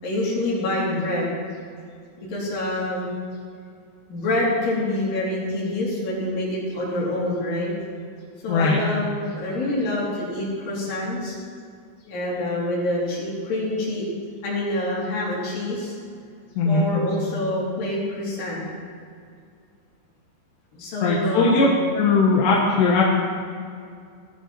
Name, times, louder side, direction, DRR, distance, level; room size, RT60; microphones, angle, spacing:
voice 1, 0.0-1.3 2.2-3.1 4.1-7.7 8.4-11.4 12.0-14.1 14.4-15.9 16.7-18.6 20.7-21.7, left 1 dB, 55° left, -6 dB, 5.6 m, -26 dB
voice 2, 8.5-8.8 16.6-16.9 21.0-21.7 21.9-23.0, left 4 dB, 80° left, -3 dB, 3.5 m, -19 dB
18.5 x 11.5 x 4.5 m, 2.2 s
omnidirectional pair, 4.8 m